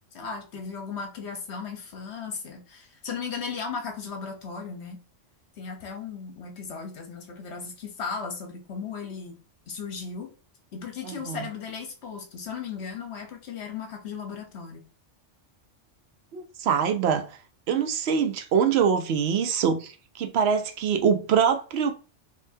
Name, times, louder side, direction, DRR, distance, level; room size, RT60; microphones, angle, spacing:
voice 1, 0.1-5.0 5.6-9.4 9.7-10.3 10.7-14.8, left 5 dB, 60° left, 1.1 m, -36 dB
voice 2, 11.0-11.5 16.3-17.4 17.7-19.9 20.2-21.9, right 7 dB, 65° right, 0.8 m, -24 dB
5.3 x 2.7 x 2.7 m
omnidirectional pair, 1.3 m